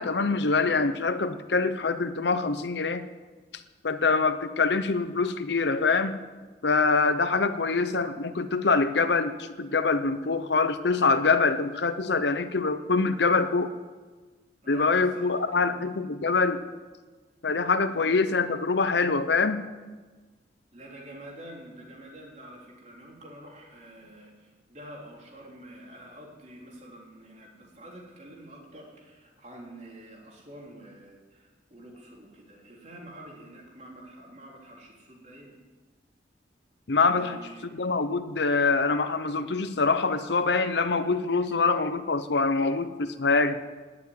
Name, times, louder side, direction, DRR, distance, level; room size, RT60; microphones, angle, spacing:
voice 1, 0.0-3.1 3.8-6.2 6.6-13.7 14.7-16.6 17.4-19.6 36.9-37.4 37.7-43.6, left 4 dB, 70° left, 11 dB, 0.8 m, -25 dB
voice 2, 14.6-15.9 17.5-17.6 17.8-18.0 20.7-35.5 37.1-37.7, right 1 dB, 40° right, -2 dB, 3.7 m, -47 dB
18.5 x 7.1 x 9.5 m, 1.3 s
head